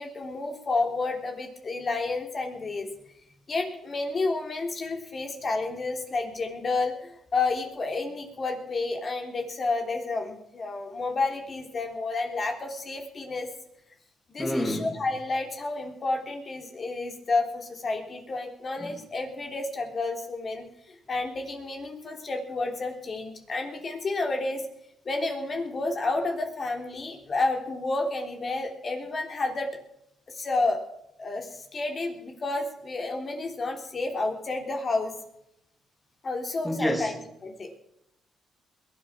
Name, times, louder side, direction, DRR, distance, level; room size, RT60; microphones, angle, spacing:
voice 1, 0.0-2.9 3.5-13.5 14.3-24.6 25.0-29.7 30.3-30.8 31.2-35.2 36.2-37.7, left 3 dB, 40° left, 3.4 m, -30 dB
voice 2, 14.4-14.9 18.8-19.0 36.6-37.1, equal, 5° left, 2.0 m, -28 dB
22.0 x 8.8 x 6.1 m
cardioid pair, 90°, 0 cm